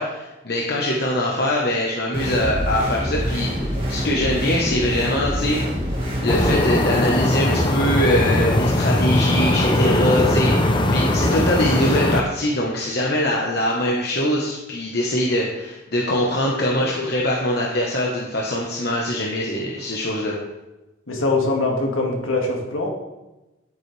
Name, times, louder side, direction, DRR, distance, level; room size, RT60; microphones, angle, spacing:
voice 1, 0.0-5.6 6.2-20.4, left 1 dB, 50° left, -2 dB, 1.1 m, -23 dB
sound 1, 2.1-6.5, equal, 25° right, 2.2 m, -25 dB
sound 2, 6.3-12.2, left 1 dB, 25° left, 0.6 m, -20 dB
voice 2, 16.8-17.1 21.1-22.9, left 2 dB, 80° left, 0 dB, 2.0 m, -23 dB
9.5 x 9.0 x 3.3 m, 1.0 s
head